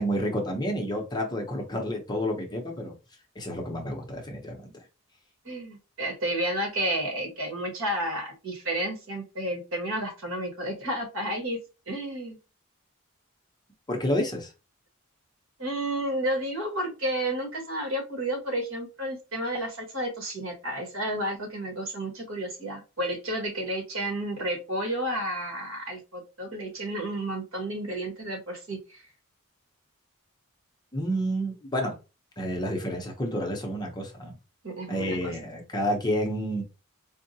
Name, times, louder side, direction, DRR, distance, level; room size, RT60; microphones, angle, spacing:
voice 1, 0.0-2.9 3.4-4.8 13.9-14.5 30.9-32.0 32.4-34.3 34.9-36.6, equal, 20° left, 1 dB, 0.6 m, -30 dB
voice 2, 5.4-11.6 11.9-12.4 15.6-29.0 34.6-35.4, right 1 dB, 70° right, 2 dB, 1.4 m, -31 dB
4.5 x 2.0 x 2.7 m, 0.30 s
head